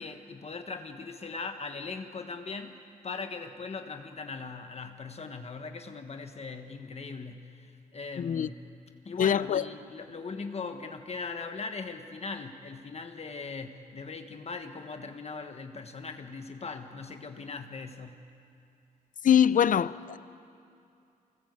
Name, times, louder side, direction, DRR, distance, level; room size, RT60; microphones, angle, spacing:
voice 1, 0.0-8.5 9.0-18.3, left 4 dB, 45° left, 1.4 m, -40 dB
voice 2, 8.2-8.5 9.2-9.6 19.2-20.2, left 9 dB, 60° left, 0.6 m, -23 dB
24.0 x 19.5 x 8.2 m
cardioid pair, 85°, 15 cm